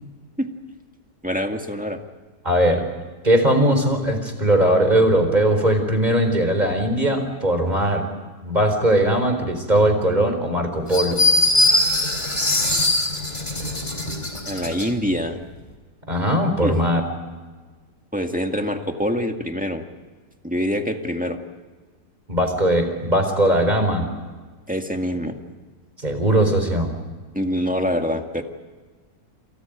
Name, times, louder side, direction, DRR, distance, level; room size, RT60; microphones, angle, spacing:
voice 1, 1.2-2.0 14.5-15.4 16.6-16.8 18.1-19.8 20.4-21.4 24.7-25.4 27.3-28.4, equal, 5° right, 4 dB, 1.8 m, -25 dB
voice 2, 2.4-2.9 3.2-8.1 8.4-11.2 16.1-17.0 22.3-24.1 26.0-26.9, right 1 dB, 25° right, 6 dB, 4.3 m, -19 dB
sound 1, 10.9-14.9, left 2 dB, 25° left, 3.9 m, -21 dB
29.0 x 28.0 x 5.1 m, 1.4 s
omnidirectional pair, 1.8 m